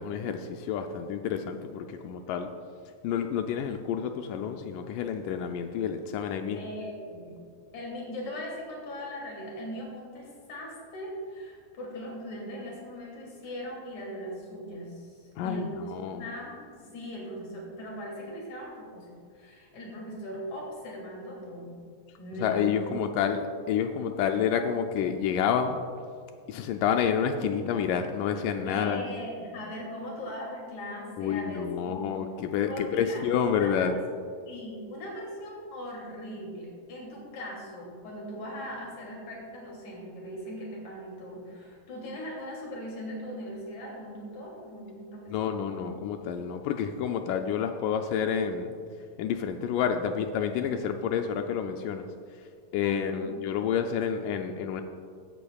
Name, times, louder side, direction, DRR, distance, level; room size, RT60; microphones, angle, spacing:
voice 1, 0.0-2.5 3.0-6.6 15.4-16.2 22.4-25.8 26.5-29.1 31.2-34.0 45.3-48.7 49.2-52.1 52.7-54.8, left 7 dB, 80° left, 6 dB, 2.0 m, -29 dB
voice 2, 6.5-7.4 7.7-16.7 16.9-19.1 19.3-21.8 22.2-23.0 28.6-32.1 32.7-33.2 33.6-33.9 34.5-45.5 52.8-53.3, equal, 55° left, -3 dB, 3.8 m, -39 dB
15.5 x 9.9 x 2.3 m, 2.3 s
omnidirectional pair, 4.0 m